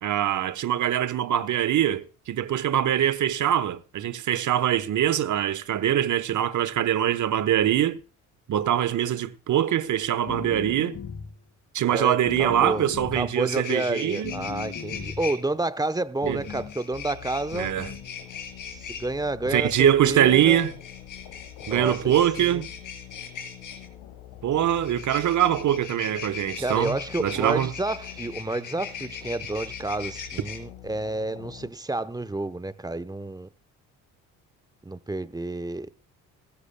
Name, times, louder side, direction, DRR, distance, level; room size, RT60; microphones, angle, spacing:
voice 1, 0.0-8.0 8.5-11.0 11.7-14.3 16.3-16.4 17.5-17.9 19.5-20.7 21.7-22.7 24.4-27.7, right 11 dB, 55° right, 1.2 m, -23 dB
sound 1, 10.3-11.4 12.2-13.4 14.2-15.3 16.2-16.8 17.5-18.1, left 6 dB, 40° left, 1.5 m, -37 dB
voice 2, 11.9-12.9 13.1-17.7 18.6-20.7 21.6-22.6 26.6-33.5 34.8-35.9, right 2 dB, 10° right, 0.9 m, -30 dB
sound 2, 12.9-13.0 13.3-15.3 16.4-19.0 20.5-23.9 24.8-30.6, left 7 dB, 55° left, 4.3 m, -39 dB
sound 3, 16.9-31.7, left 12 dB, 75° left, 1.9 m, -45 dB
17.0 x 15.0 x 2.3 m
supercardioid pair, 65°, 36 cm